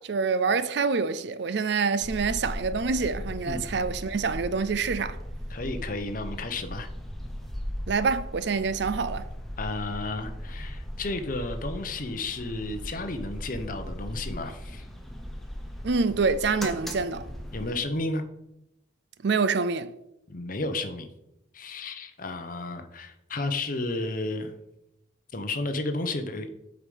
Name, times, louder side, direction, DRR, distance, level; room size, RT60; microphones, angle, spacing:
voice 1, 0.0-5.2 7.9-9.3 15.8-17.3 19.2-19.9, right 4 dB, 60° right, 0.5 m, -26 dB
sound 1, 2.0-17.8, equal, ahead, 0.9 m, -38 dB
voice 2, 5.5-6.9 9.6-14.8 17.5-18.2 20.3-21.1 21.5-24.5 25.3-26.5, left 2 dB, 45° left, 0.9 m, -32 dB
8.0 x 5.0 x 5.5 m
head